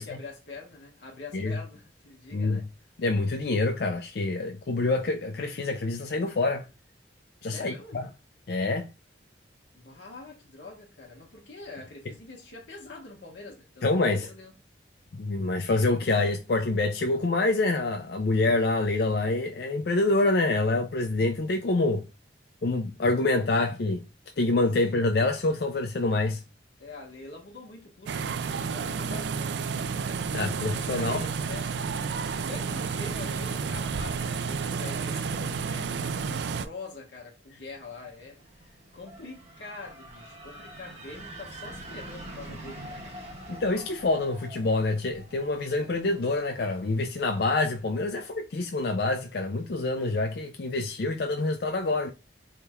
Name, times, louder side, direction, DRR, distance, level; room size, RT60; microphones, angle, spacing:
voice 1, 0.0-2.7 7.5-8.0 9.7-14.5 24.8-25.0 26.8-29.9 30.6-32.0 32.3-43.1, left 3 dB, 85° left, 1.3 m, -45 dB
voice 2, 2.3-2.6 3.0-6.7 7.4-8.1 8.5-8.9 13.8-14.3 15.1-22.0 22.6-24.0 24.4-26.4 30.3-31.2 43.5-52.1, left 2 dB, 60° left, 0.4 m, -26 dB
sound 1, 28.1-36.7, right 5 dB, 70° right, 0.3 m, -31 dB
sound 2, 37.8-47.6, right 1 dB, 35° right, 1.0 m, -46 dB
4.3 x 3.5 x 2.3 m
head